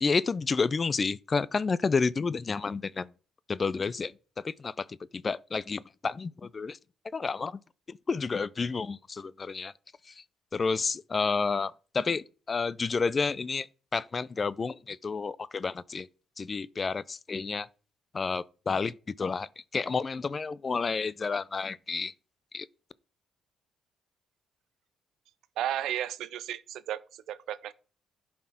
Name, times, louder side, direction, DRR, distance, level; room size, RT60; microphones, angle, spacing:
voice 1, 0.0-3.1 3.5-6.8 7.1-7.6 7.9-9.7 10.0-10.2 10.5-13.7 13.9-16.1 16.4-17.7 18.1-22.1 22.5-22.7, left 4 dB, 35° left, 0.4 m, -30 dB
voice 2, 25.6-27.7, right 11 dB, 80° right, 0.5 m, -34 dB
11.0 x 4.3 x 5.8 m
cardioid pair, 90°, 0 cm